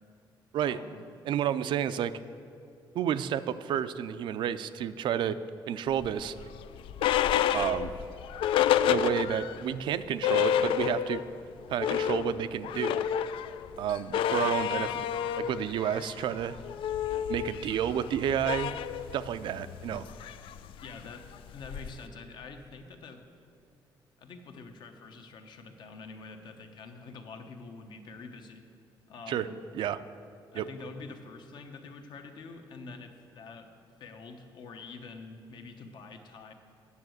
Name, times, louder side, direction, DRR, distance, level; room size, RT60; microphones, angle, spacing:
voice 1, 0.6-1.0 20.8-21.3 21.5-23.2 24.2-28.6 29.1-29.5 30.5-33.7 34.0-36.5, left 4 dB, 60° left, 6 dB, 0.9 m, -46 dB
voice 2, 1.3-2.1 2.9-5.4 5.7-6.3 7.5-7.9 8.8-11.2 11.7-13.1 13.8-15.1 15.4-16.6 17.3-18.7 19.1-20.1 29.3-29.5 29.7-30.0 30.5-30.6, right 9 dB, 65° right, 13 dB, 0.4 m, -30 dB
sound 1, 6.0-9.6 9.9-10.0 10.2-11.3 11.6-22.1, left 10 dB, 90° left, 0.4 m, -30 dB
9.6 x 7.0 x 7.8 m, 2.4 s
cardioid pair, 165°, 9 cm